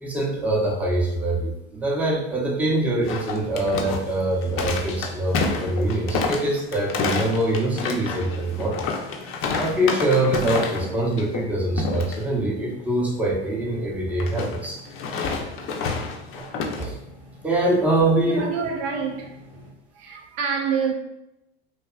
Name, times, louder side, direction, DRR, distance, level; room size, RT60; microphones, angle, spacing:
voice 1, 0.0-8.8 9.6-14.8 16.3-16.5 16.8-17.0 17.4-18.5, right 1 dB, 5° right, 0.6 m, -24 dB
sound 1, 3.0-10.9 11.2-11.5 11.8-12.2 14.2-16.9, left 4 dB, 45° left, 0.5 m, -28 dB
sound 2, 3.1-19.7, left 1 dB, 85° right, 1.4 m, -47 dB
voice 2, 18.2-19.7 19.9-20.9, right 6 dB, 65° right, 0.5 m, -27 dB
2.6 x 2.3 x 2.3 m
hypercardioid pair, 85°, 32 cm